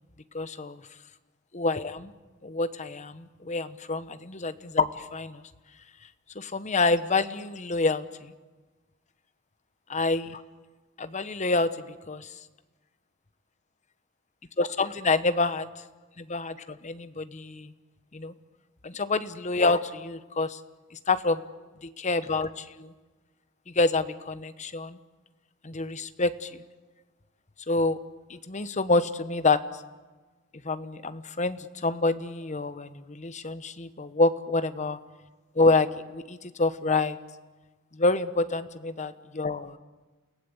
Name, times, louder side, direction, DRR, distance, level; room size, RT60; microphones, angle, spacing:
voice 1, 0.3-0.8 1.5-2.1 2.4-5.4 6.3-8.3 9.9-10.4 11.0-11.7 12.1-12.3 14.6-15.7 16.2-17.7 18.1-18.3 18.8-20.6 21.1-21.4 21.8-22.9 23.7-25.0 25.6-26.6 27.7-28.0 28.3-29.6 30.6-35.0 35.5-37.2 37.9-39.8, left 3 dB, 35° left, 12 dB, 1.0 m, -27 dB
29.0 x 18.0 x 8.3 m, 1.3 s
head